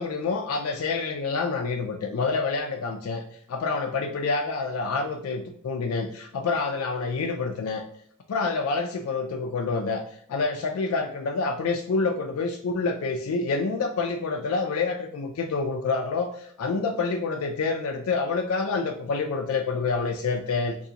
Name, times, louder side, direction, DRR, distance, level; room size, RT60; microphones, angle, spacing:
voice 1, 0.0-3.2 3.5-7.8 8.3-20.8, left 4 dB, 90° left, 4 dB, 0.4 m, -27 dB
2.8 x 2.6 x 3.7 m, 0.66 s
head